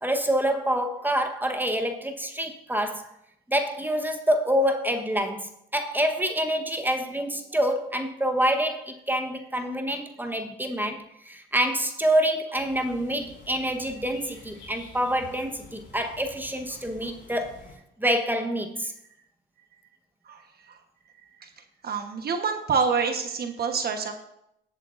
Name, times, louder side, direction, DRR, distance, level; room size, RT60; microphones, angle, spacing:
voice 1, 0.0-3.1 3.5-17.7 18.0-18.9, equal, 10° right, 1.1 m, -27 dB
sound 1, 12.6-17.8, left 3 dB, 80° left, 4.1 m, -49 dB
voice 2, 21.8-24.2, right 5 dB, 50° right, 1.2 m, -26 dB
18.5 x 8.2 x 2.5 m
cardioid pair, 90°, 20 cm